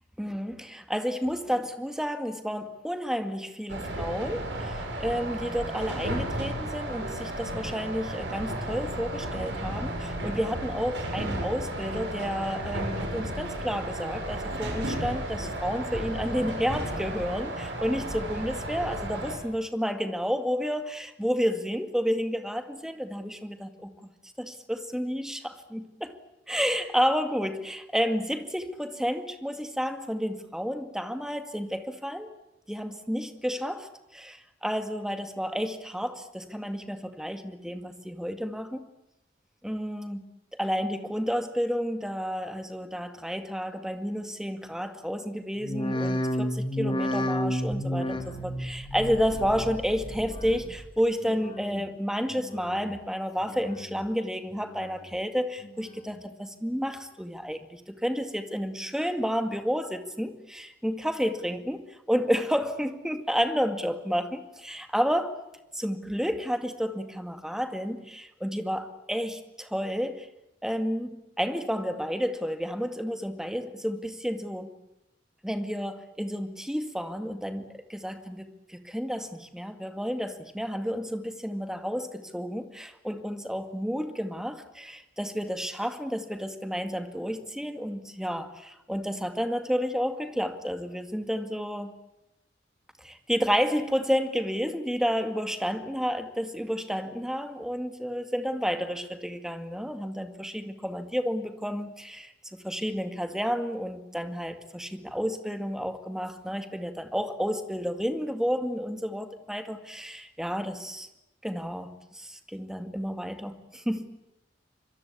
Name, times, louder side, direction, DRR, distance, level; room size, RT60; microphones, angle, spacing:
voice 1, 0.2-23.9 24.4-26.1 26.5-32.3 32.7-38.8 39.6-40.2 40.5-65.4 65.8-70.3 70.6-74.7 75.4-77.6 77.9-91.9 93.0-102.3 102.6-111.1 111.4-114.1, equal, 5° right, 8 dB, 2.1 m, -31 dB
sound 1, 3.7-19.4, right 1 dB, 70° right, 7.4 m, -33 dB
sound 2, 45.6-50.9 51.2-51.8 52.3-53.0 53.4-54.1 54.5-55.2 55.6-56.2 56.7-56.8, equal, 25° left, 2.3 m, -32 dB
26.0 x 22.0 x 8.5 m, 0.89 s
head